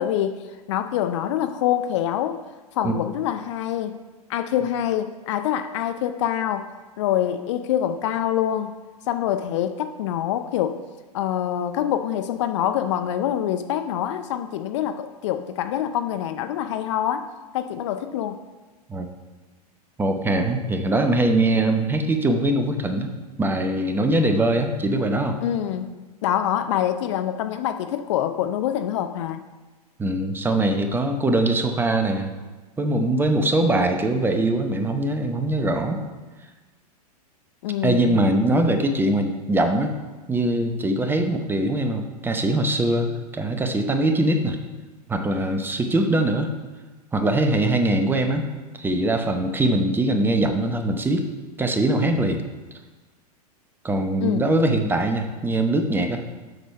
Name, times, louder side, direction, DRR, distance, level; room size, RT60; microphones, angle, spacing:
voice 1, 0.0-2.4 2.8-3.9 4.3-6.7 7.0-8.7 9.1-10.8 11.1-17.3 17.5-18.4 25.4-29.4 37.6-38.3 54.2-54.5, left 10 dB, 45° left, 9 dB, 0.6 m, -25 dB
voice 2, 20.0-23.1 23.4-25.4 30.0-32.3 32.8-36.0 37.8-40.0 40.3-44.6 45.1-46.5 47.1-48.5 48.8-51.3 51.6-52.5 53.8-56.2, right 1 dB, 10° right, 6 dB, 0.8 m, -22 dB
7.8 x 6.2 x 5.3 m, 1.3 s
figure-of-eight pair, 100°, 21 cm